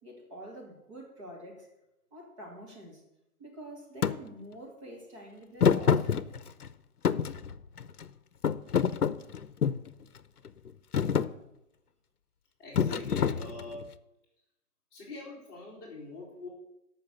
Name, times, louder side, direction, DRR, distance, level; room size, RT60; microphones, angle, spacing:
voice 1, 0.0-1.7 2.1-3.0 3.4-6.1, right 1 dB, 20° right, -2 dB, 2.3 m, -46 dB
Thump thud, 4.0-4.2 5.6-6.7 7.0-8.0 8.4-9.9 10.5-10.7 10.9-11.3 12.8-13.8, left 7 dB, 75° left, 0.8 m, -26 dB
voice 2, 12.6-14.0 14.9-16.5, left 2 dB, 15° left, -6 dB, 2.5 m, -43 dB
13.5 x 6.0 x 6.8 m, 0.87 s
hypercardioid pair, 165°, 46 cm